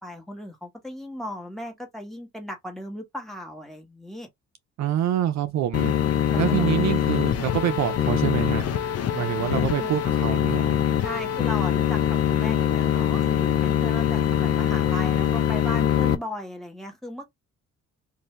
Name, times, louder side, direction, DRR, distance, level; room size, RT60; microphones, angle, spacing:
voice 1, 0.0-4.3 6.3-7.0 9.4-9.9 11.0-17.3, left 1 dB, ahead, 1.3 m, -37 dB
voice 2, 4.8-5.9 6.4-8.8 9.1-10.8, right 11 dB, 65° right, 0.5 m, -26 dB
sound 1, 5.7-16.1, left 10 dB, 55° left, 0.6 m, -23 dB
2.7 x 2.6 x 3.3 m
cardioid pair, 90°, 30 cm